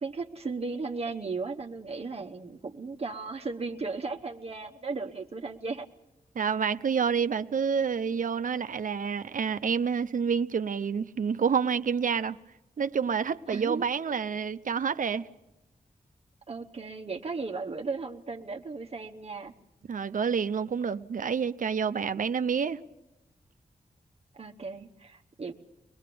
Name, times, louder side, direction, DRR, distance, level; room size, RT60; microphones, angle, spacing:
voice 1, 0.0-5.9 13.5-13.9 16.5-19.5 24.3-25.5, right 4 dB, 45° right, 1.0 m, -36 dB
voice 2, 6.3-12.4 12.8-15.3 19.9-22.8, right 6 dB, 65° right, 0.7 m, -28 dB
23.5 x 20.0 x 6.9 m
wide cardioid pair, 80°, 15 cm